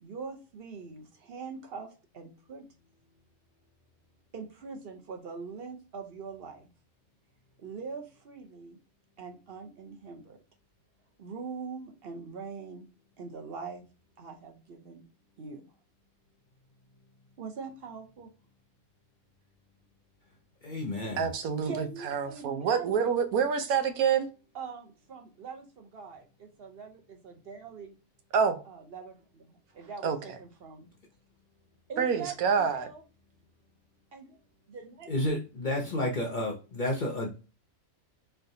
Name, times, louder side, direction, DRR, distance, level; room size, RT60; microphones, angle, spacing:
voice 1, 0.0-2.6 4.3-6.7 7.6-8.8 9.2-10.4 11.2-12.9 13.2-13.8 14.2-15.0 15.4-15.7 17.4-18.3 21.6-23.1 24.5-27.9 28.7-30.9 31.9-33.0 34.1-34.4 34.7-35.1, right 5 dB, 50° right, 0.8 m, -43 dB
voice 2, 20.6-21.3 35.1-37.3, left 1 dB, 45° left, 0.6 m, -31 dB
voice 3, 21.2-24.3 28.3-28.6 30.0-30.2 32.0-32.9, right 6 dB, 85° right, 1.1 m, -27 dB
3.7 x 3.3 x 2.7 m
omnidirectional pair, 1.5 m